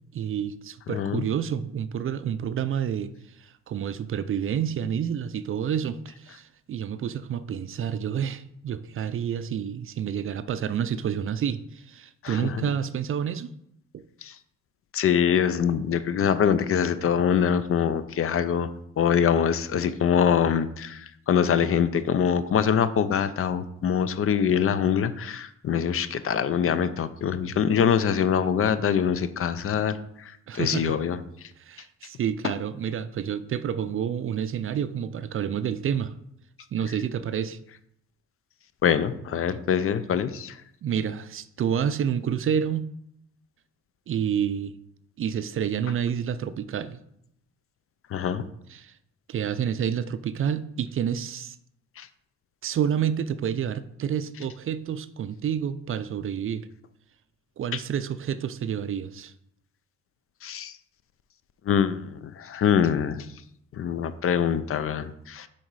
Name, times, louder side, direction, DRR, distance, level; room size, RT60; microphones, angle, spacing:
voice 1, 0.1-13.5 13.9-14.0 30.5-30.9 31.6-36.1 36.7-37.6 40.8-42.9 44.1-44.7 45.2-47.0 48.7-48.9 49.3-51.6 52.6-56.7 57.6-59.3, right 8 dB, 45° right, 13 dB, 0.4 m, -29 dB
voice 2, 0.9-1.3 12.2-12.6 14.2-14.4 14.9-18.7 19.0-31.2 38.8-40.6 48.1-48.4 52.0-52.1 57.7-57.8 60.4-60.7 61.7-63.3 63.7-65.5, left 8 dB, 50° left, 13 dB, 0.5 m, -24 dB
6.3 x 4.2 x 4.7 m, 0.74 s
cardioid pair, 90°, 30 cm